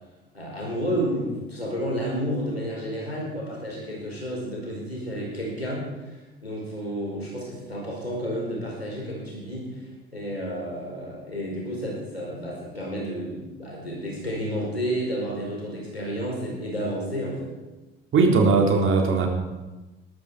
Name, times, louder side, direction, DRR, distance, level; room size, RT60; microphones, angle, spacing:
voice 1, 0.3-9.6 10.1-17.5, equal, 90° left, -3 dB, 5.0 m, -31 dB
voice 2, 18.1-19.3, right 4 dB, 40° right, 1 dB, 3.8 m, -19 dB
20.5 x 13.0 x 5.0 m, 1.1 s
figure-of-eight pair, 55°, 30 cm